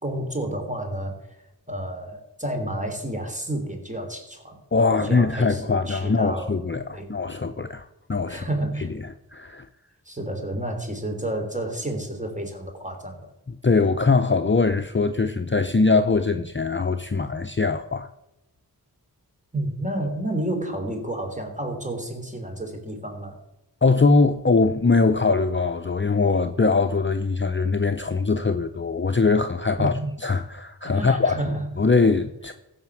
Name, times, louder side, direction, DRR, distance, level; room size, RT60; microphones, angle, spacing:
voice 1, 0.0-1.4 1.7-6.6 6.9-7.1 8.3-8.9 10.0-13.3 19.5-23.4 29.8-30.1 30.8-31.7, right 1 dB, 20° right, 3.4 m, -30 dB
voice 2, 4.7-8.5 8.8-8.9 9.3-9.7 13.6-18.1 23.8-29.9 30.2-31.3 31.8-32.5, left 4 dB, 30° left, 0.7 m, -22 dB
15.5 x 5.9 x 7.2 m
wide cardioid pair, 45°, 40 cm